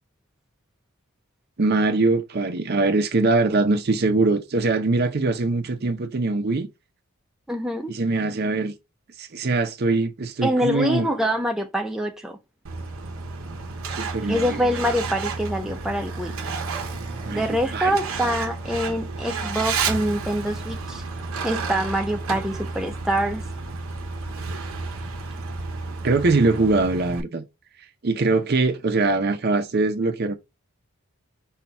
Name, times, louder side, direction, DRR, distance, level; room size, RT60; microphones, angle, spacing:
voice 1, 1.6-6.7 7.9-8.7 9.2-11.1 13.9-14.6 17.2-18.0 26.0-27.4 28.0-30.3, right 3 dB, 50° right, 0.6 m, -22 dB
voice 2, 7.5-7.9 10.4-12.4 14.3-16.4 17.3-21.0 21.4-23.5, equal, ahead, 0.5 m, -25 dB
Truck, 12.6-27.2, right 4 dB, 75° right, 0.8 m, -31 dB
5.6 x 2.3 x 4.2 m
head